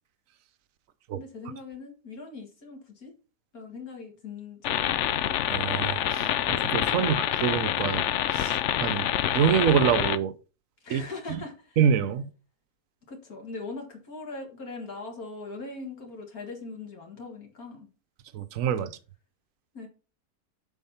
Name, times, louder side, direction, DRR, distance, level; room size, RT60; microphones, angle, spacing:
voice 1, 1.1-3.1 3.5-5.0 7.0-7.1 8.9-9.1 10.8-11.8 13.1-17.9 19.7-19.9, left 3 dB, 60° left, 2.3 m, -40 dB
sound 1, 4.6-10.2, left 11 dB, 80° left, 0.6 m, -27 dB
voice 2, 5.5-6.3 6.6-8.0 8.3-9.0 9.3-10.3 10.9-11.0 11.8-12.3 18.3-18.9, right 8 dB, 60° right, 1.1 m, -25 dB
7.3 x 4.7 x 5.6 m
omnidirectional pair, 1.8 m